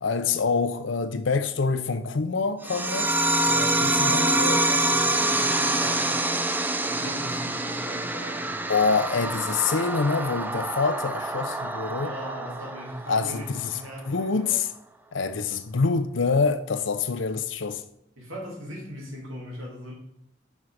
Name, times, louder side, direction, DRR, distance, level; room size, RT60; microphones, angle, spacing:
voice 1, 0.0-3.1 3.8-4.6 8.7-12.1 13.1-13.6 14.1-14.7 15.1-17.8, left 4 dB, 65° left, 0.6 m, -26 dB
sound 1, 2.6-13.7, right 2 dB, 10° right, 0.3 m, -26 dB
voice 2, 3.4-6.2 6.8-8.8 12.0-14.6 18.2-19.9, equal, 90° right, 2.7 m, -39 dB
6.1 x 5.4 x 5.0 m
head